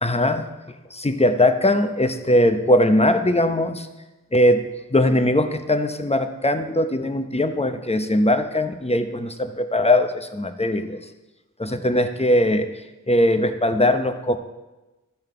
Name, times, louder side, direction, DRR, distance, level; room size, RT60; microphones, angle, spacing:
voice 1, 0.0-0.5 0.9-3.9 4.3-11.0 11.6-12.7 13.1-14.4, left 1 dB, 20° left, 8 dB, 0.9 m, -20 dB
13.0 x 5.6 x 6.8 m, 1.1 s
wide cardioid pair, 45°, 32 cm